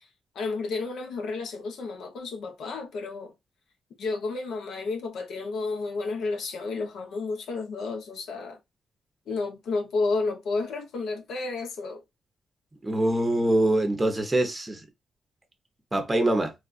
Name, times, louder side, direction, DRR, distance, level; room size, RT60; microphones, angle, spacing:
voice 1, 0.3-3.3 4.0-8.6 9.3-12.0, left 3 dB, 80° left, 0.8 m, -31 dB
voice 2, 12.8-14.8 15.9-16.5, right 1 dB, 15° right, 0.7 m, -24 dB
3.4 x 2.3 x 2.4 m
wide cardioid pair, 150°, 0 cm